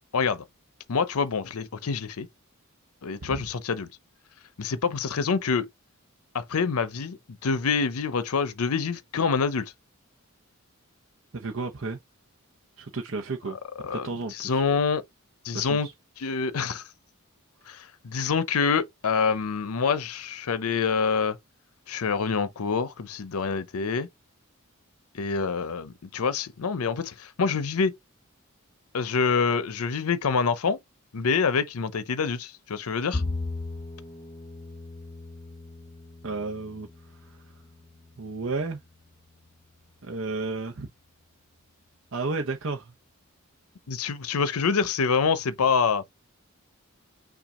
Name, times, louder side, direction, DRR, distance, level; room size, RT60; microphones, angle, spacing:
voice 1, 0.1-0.4 0.9-2.3 3.0-3.9 4.6-5.7 6.3-9.7 13.8-15.0 15.4-15.9 16.2-16.8 17.7-21.4 21.9-24.1 25.1-27.9 28.9-30.8 31.1-33.2 43.9-46.1, left 5 dB, 90° left, 0.6 m, -26 dB
voice 2, 11.3-12.0 12.8-13.6 13.9-14.6 15.5-15.9 36.2-36.9 37.2-37.4 38.2-38.8 40.0-40.9 42.1-42.9, right 3 dB, 60° right, 0.8 m, -32 dB
Bowed string instrument, 33.1-39.5, left 2 dB, 25° left, 0.7 m, -38 dB
5.8 x 2.4 x 3.7 m
head